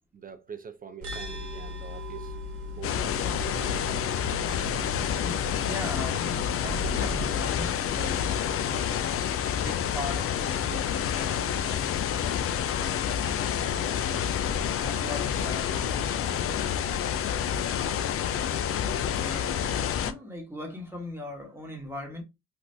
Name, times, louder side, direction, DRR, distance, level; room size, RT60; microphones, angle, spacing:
voice 1, 0.1-2.4 2.7-3.8, right 6 dB, 30° right, 0.4 m, -44 dB
sound 1, 1.0-7.5, left 2 dB, 45° right, 1.3 m, -38 dB
sound 2, 2.8-20.1, left 9 dB, 50° left, 0.4 m, -28 dB
voice 2, 5.0-13.5 13.9-17.1 19.1-22.2, left 1 dB, 10° right, 1.2 m, -41 dB
3.4 x 2.4 x 2.6 m
cardioid pair, 90°, 30 cm